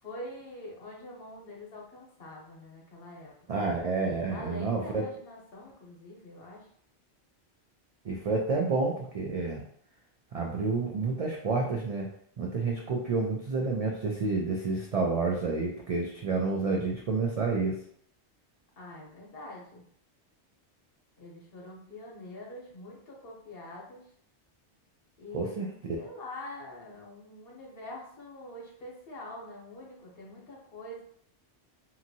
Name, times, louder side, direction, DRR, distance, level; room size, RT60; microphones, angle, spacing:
voice 1, 0.0-3.6 4.3-6.7 18.8-19.8 21.2-24.1 25.2-25.6 26.0-31.0, left 1 dB, 60° left, -3 dB, 1.0 m, -45 dB
voice 2, 3.5-5.0 8.0-9.6 10.3-12.1 12.4-17.8 25.3-25.7, right 3 dB, 65° right, -1 dB, 0.3 m, -29 dB
2.9 x 2.6 x 2.7 m, 0.63 s
omnidirectional pair, 1.2 m